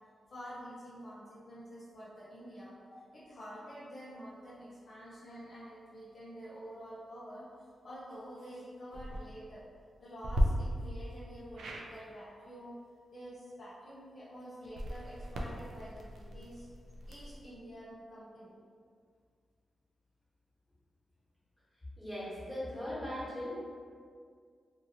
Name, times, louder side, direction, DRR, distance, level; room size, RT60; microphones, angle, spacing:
voice 1, 0.3-2.8 3.1-7.5 7.8-9.6 10.0-12.8 13.1-16.7 17.0-18.6, equal, 55° left, -9 dB, 0.7 m, -48 dB
sound 1, 8.8-9.2 10.2-10.4 11.5-11.9 14.6-17.4, equal, 85° right, 0.3 m, -36 dB
voice 2, 22.0-23.6, left 1 dB, 15° left, -9 dB, 1.4 m, -39 dB
2.7 x 2.7 x 2.8 m, 2.1 s
cardioid pair, 70°, 0 cm